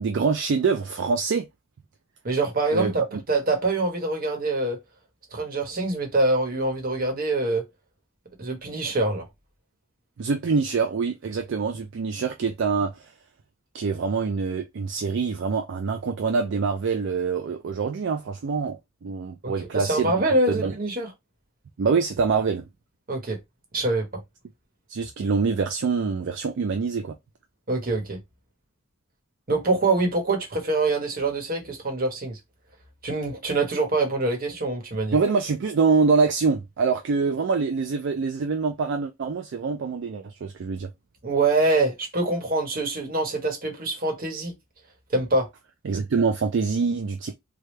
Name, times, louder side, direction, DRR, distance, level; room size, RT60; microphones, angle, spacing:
voice 1, 0.0-1.5 2.7-3.2 10.2-13.1 13.7-20.1 20.5-20.7 21.8-22.6 24.9-27.2 35.1-40.9 45.8-47.3, right 5 dB, 65° right, 0.4 m, -25 dB
voice 2, 2.2-4.8 5.3-7.6 8.4-9.2 19.4-21.1 23.1-23.4 23.7-24.1 27.7-28.2 29.5-32.4 33.0-35.2 41.2-44.5 45.1-45.5, right 2 dB, 45° right, 1.1 m, -25 dB
3.3 x 2.3 x 3.1 m
head